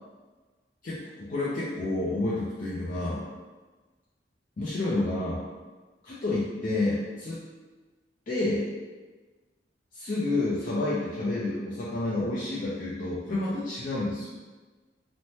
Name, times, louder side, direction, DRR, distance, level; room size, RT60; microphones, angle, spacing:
voice 1, 0.8-3.3 4.6-5.4 6.0-7.4 8.3-8.7 9.9-14.3, left 2 dB, 50° left, -8 dB, 0.5 m, -29 dB
3.2 x 2.1 x 2.7 m, 1.3 s
head